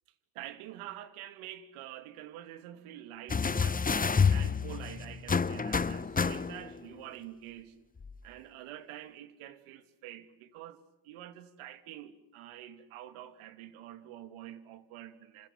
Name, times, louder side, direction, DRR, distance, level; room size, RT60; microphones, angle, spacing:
voice 1, 0.3-3.8 4.3-7.8 8.2-10.8 11.0-15.5, right 12 dB, 75° right, 2.9 m, -47 dB
sound 1, 3.3-6.8 8.0-8.1, left 5 dB, 15° left, 1.1 m, -29 dB
29.5 x 27.0 x 7.3 m
supercardioid pair, 85°, 49 cm